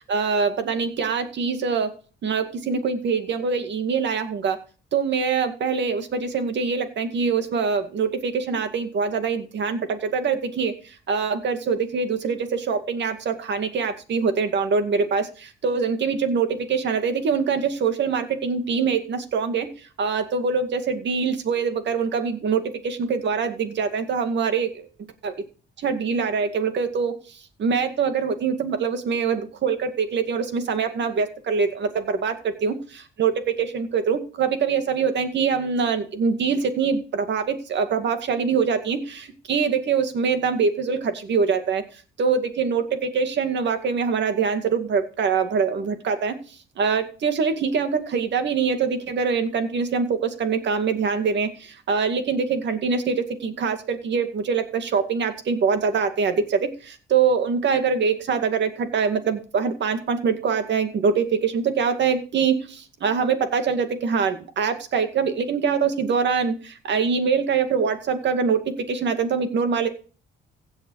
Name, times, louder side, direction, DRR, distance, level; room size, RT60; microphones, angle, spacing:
voice 1, 0.1-1.9 2.2-4.6 4.9-10.7 11.1-19.7 20.0-24.9 25.2-25.3 25.8-27.2 27.6-32.3 32.6-32.8 33.2-41.8 42.2-46.4 46.8-68.6 68.9-69.9, right 5 dB, 65° right, 8 dB, 2.2 m, -24 dB
16.0 x 7.9 x 4.8 m, 0.38 s
cardioid pair, 90°, 20 cm